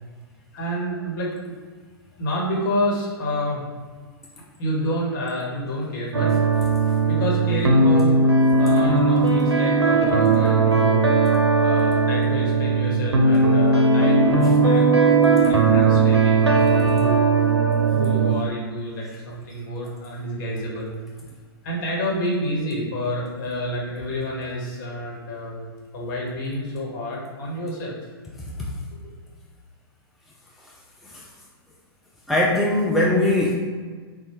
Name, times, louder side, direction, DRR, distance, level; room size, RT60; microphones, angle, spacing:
voice 1, 0.5-1.6 2.2-3.7 4.6-6.3 7.0-8.2 8.6-11.0 11.6-17.2 17.9-20.9 21.6-25.6 25.9-28.0, equal, 50° left, -3 dB, 1.1 m, -29 dB
sound 1, 6.1-18.4, right 3 dB, 90° right, 0.5 m, -18 dB
voice 2, 28.4-28.8 31.0-31.2 32.3-33.5, left 1 dB, ahead, -5 dB, 0.3 m, -21 dB
4.2 x 2.1 x 3.0 m, 1.5 s
figure-of-eight pair, 105°, 13 cm